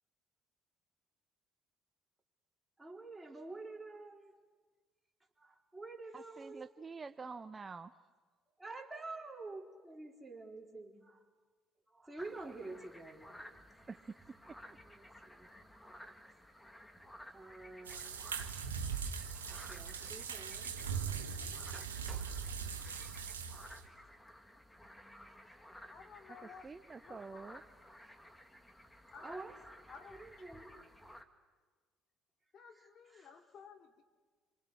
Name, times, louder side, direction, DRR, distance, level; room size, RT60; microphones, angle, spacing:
voice 1, 2.8-4.3 5.4-6.6 8.6-11.2 11.9-13.4 14.8-15.5 17.3-18.2 19.5-20.7 21.1-22.6 24.8-25.3 29.2-29.6 29.9-30.8 32.8-33.3, right 3 dB, 10° right, 1 dB, 4.1 m, -49 dB
voice 2, 6.1-7.9 13.9-14.6 26.3-27.6, right 4 dB, 30° right, 11 dB, 0.8 m, -48 dB
sound 1, 12.2-31.2, equal, 5° left, 2.3 m, -56 dB
sound 2, 17.8-23.8, right 7 dB, 90° right, 1.5 m, -40 dB
voice 3, 25.6-26.7 27.0-27.6 29.1-29.3 29.9-30.2 32.5-34.0, left 6 dB, 50° left, 4 dB, 2.8 m, -55 dB
28.0 x 25.0 x 8.4 m, 1.5 s
hypercardioid pair, 55°, 0 cm